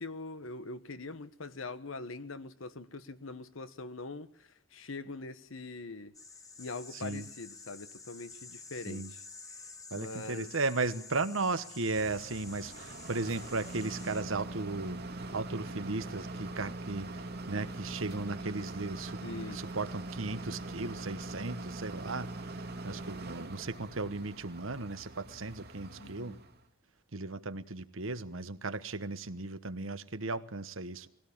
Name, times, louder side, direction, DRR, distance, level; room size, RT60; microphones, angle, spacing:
voice 1, 0.0-6.1 6.6-9.2 9.9-10.5 19.2-19.6 26.0-26.4, left 3 dB, 80° left, 1.3 m, -43 dB
sound 1, 6.1-16.7 17.4-18.8, left 4 dB, 15° left, 1.2 m, -51 dB
voice 2, 6.9-7.2 8.9-9.1 9.9-15.0 15.3-22.3 22.8-26.4 27.1-31.1, right 3 dB, 75° right, 1.2 m, -36 dB
sound 2, 11.9-26.6, right 2 dB, 55° right, 2.0 m, -42 dB
21.0 x 16.5 x 8.7 m
head